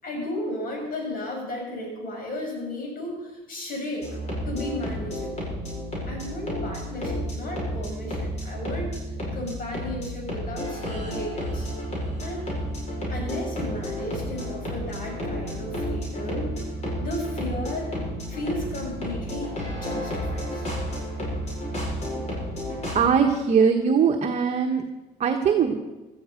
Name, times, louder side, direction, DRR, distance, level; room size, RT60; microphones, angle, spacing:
voice 1, 0.0-4.2 4.4-5.6 6.1-11.7 12.2-12.5 13.1-16.5 17.0-17.9 18.3-20.7, left 1 dB, 55° left, 1 dB, 6.3 m, -34 dB
sound 1, 4.0-23.0, equal, 40° left, 7.2 m, -31 dB
voice 2, 22.9-24.8 25.2-25.7, right 6 dB, 40° right, 3 dB, 1.2 m, -21 dB
16.5 x 13.0 x 5.2 m, 1.1 s
cardioid pair, 110°, 17 cm